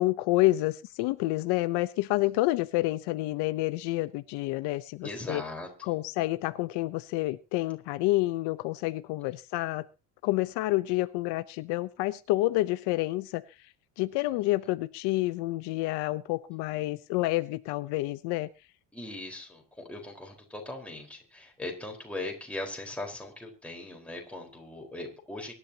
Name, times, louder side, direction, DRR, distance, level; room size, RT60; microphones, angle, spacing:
voice 1, 0.0-5.4 5.8-9.9 10.2-13.4 14.0-18.5, left 18 dB, 75° left, 12 dB, 0.9 m, -28 dB
voice 2, 5.0-5.9 9.2-9.3 14.2-14.3 18.9-25.5, left 2 dB, 5° left, 0 dB, 4.6 m, -39 dB
24.0 x 11.5 x 2.9 m, 0.31 s
cardioid pair, 150°, 41 cm